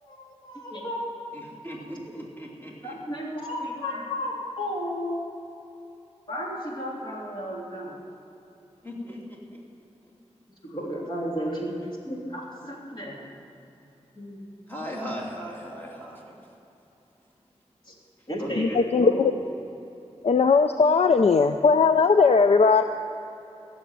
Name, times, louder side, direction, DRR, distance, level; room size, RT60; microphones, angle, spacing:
voice 1, 0.1-1.1 2.1-2.2 2.8-5.1 6.3-8.0 10.6-11.7 12.1-13.2 14.2-14.4 17.9-18.0 18.3-19.3, equal, 40° left, -4 dB, 3.3 m, -33 dB
voice 2, 1.3-3.0 8.8-9.6 14.7-16.3 18.4-18.8, equal, 15° left, -3 dB, 2.7 m, -38 dB
voice 3, 18.6-19.1 20.2-22.8, left 4 dB, 65° left, 8 dB, 0.4 m, -19 dB
15.5 x 7.1 x 9.1 m, 3.0 s
wide cardioid pair, 90°, 12 cm